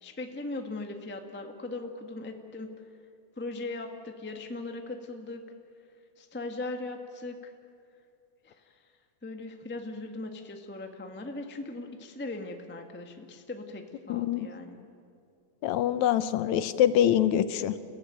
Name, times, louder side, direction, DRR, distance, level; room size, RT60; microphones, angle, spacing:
voice 1, 0.0-2.7 3.4-5.4 6.2-7.5 8.4-8.8 9.2-14.9, left 2 dB, 10° left, 4 dB, 0.5 m, -39 dB
voice 2, 14.1-14.5 15.6-17.8, left 11 dB, 75° left, 13 dB, 2.0 m, -24 dB
30.0 x 15.5 x 9.0 m, 2.5 s
omnidirectional pair, 3.5 m